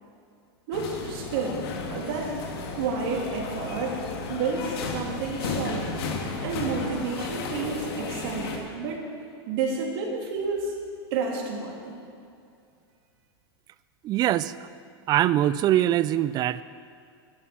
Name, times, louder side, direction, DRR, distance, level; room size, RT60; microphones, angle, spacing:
sound 1, 0.7-8.6, left 4 dB, 70° left, 2.1 m, -33 dB
voice 1, 0.7-2.3 2.7-4.0 4.3-5.9 6.4-9.0 9.5-10.8 11.1-12.0, right 4 dB, 60° right, -1 dB, 3.2 m, -30 dB
voice 2, 14.0-14.6 15.1-16.6, right 13 dB, 30° right, 17 dB, 0.4 m, -23 dB
13.0 x 11.0 x 6.1 m, 2.4 s
hypercardioid pair, 125°, 14 cm